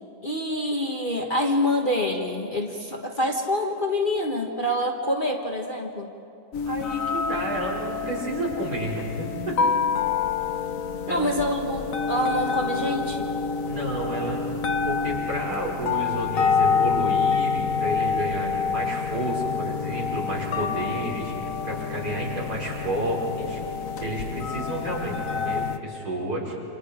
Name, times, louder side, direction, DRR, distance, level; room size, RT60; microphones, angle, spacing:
voice 1, 0.2-6.1 11.1-13.3, left 1 dB, 30° left, 0 dB, 1.5 m, -26 dB
sound 1, 6.5-25.8, left 5 dB, 55° left, 1.3 m, -27 dB
voice 2, 6.7-9.5 11.1-11.3 13.6-14.5 14.9-21.3 21.6-23.6 24.0-26.5, right 1 dB, 65° right, -4 dB, 5.6 m, -31 dB
28.5 x 27.5 x 5.1 m, 2.7 s
omnidirectional pair, 1.9 m